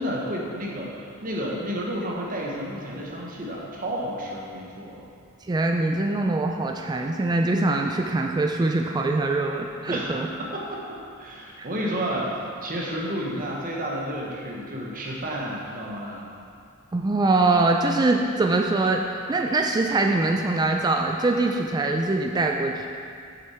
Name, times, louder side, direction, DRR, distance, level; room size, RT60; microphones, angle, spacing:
voice 1, 0.0-5.0 9.8-16.2, equal, 40° right, -3 dB, 1.2 m, -31 dB
voice 2, 5.5-10.3 16.9-19.0 19.3-22.9, right 2 dB, 20° right, 2 dB, 0.3 m, -23 dB
7.2 x 6.6 x 4.4 m, 2.4 s
head